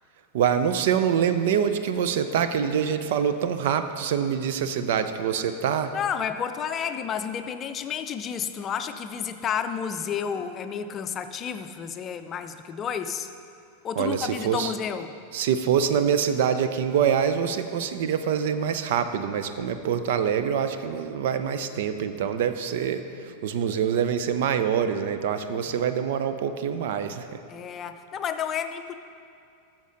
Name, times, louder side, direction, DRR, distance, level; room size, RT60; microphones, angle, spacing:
voice 1, 0.3-5.9 14.0-14.7 15.3-27.4, right 8 dB, 55° right, 10 dB, 0.6 m, -25 dB
voice 2, 5.9-13.3 13.8-15.1 25.7-25.8 27.5-28.9, left 7 dB, 30° left, 9 dB, 0.5 m, -31 dB
13.0 x 7.3 x 3.9 m, 2.4 s
figure-of-eight pair, 90°, 0 cm